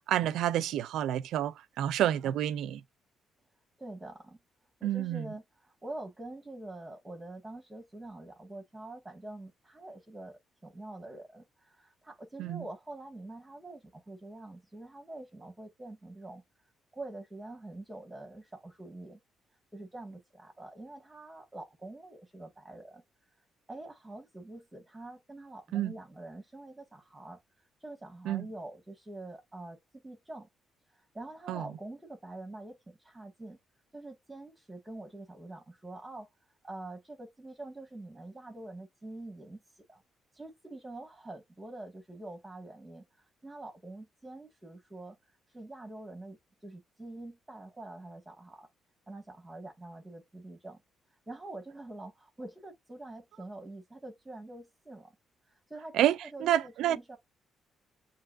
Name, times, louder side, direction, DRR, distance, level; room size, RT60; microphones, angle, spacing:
voice 1, 0.1-2.8 4.8-5.2 12.4-12.6 25.7-25.9 28.3-28.5 31.5-31.6 55.9-56.2 56.4-57.0, right 12 dB, 80° right, 0.4 m, -29 dB
voice 2, 3.8-4.4 4.8-16.4 16.9-19.2 19.7-23.0 23.7-27.4 27.8-29.8 30.0-30.5 31.1-33.6 33.9-36.3 36.6-39.6 39.9-40.0 40.3-43.0 43.4-45.2 45.5-46.4 46.6-48.7 49.1-50.8 51.3-55.1 55.7-57.2, right 2 dB, 15° right, 1.6 m, -45 dB
7.3 x 2.9 x 2.5 m
cardioid pair, 90°, 0 cm